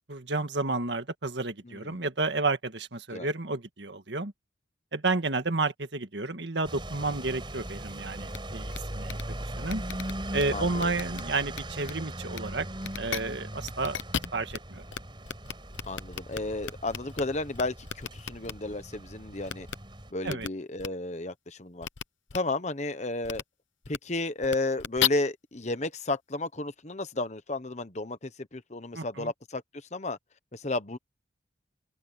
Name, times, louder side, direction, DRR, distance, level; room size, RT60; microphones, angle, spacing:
voice 1, 0.1-4.3 4.9-9.8 10.3-12.7 13.0-14.0 14.3-14.8 20.2-20.5 28.9-29.3, right 3 dB, 65° right, 1.8 m, -31 dB
voice 2, 1.7-2.0 3.1-3.3 10.5-10.9 15.9-19.7 20.1-21.9 22.3-23.4 23.9-29.6 29.9-30.2 30.5-31.0, left 2 dB, 35° left, 1.2 m, -33 dB
sound 1, 6.6-20.1, right 1 dB, 25° right, 5.3 m, -39 dB
sound 2, 8.3-8.4 8.7-8.8 9.0-9.2 9.7-10.4 10.8-11.2 11.5-11.9 12.3-12.4 12.8-13.2 13.6-14.6 14.9-15.0 15.2-17.2 17.5-18.5 19.5-19.7 20.3-20.5 20.8-20.9 21.8-22.0 22.3-22.4 23.2-23.4 23.8-24.0 24.4-25.1, left 8 dB, 80° left, 0.9 m, -33 dB
head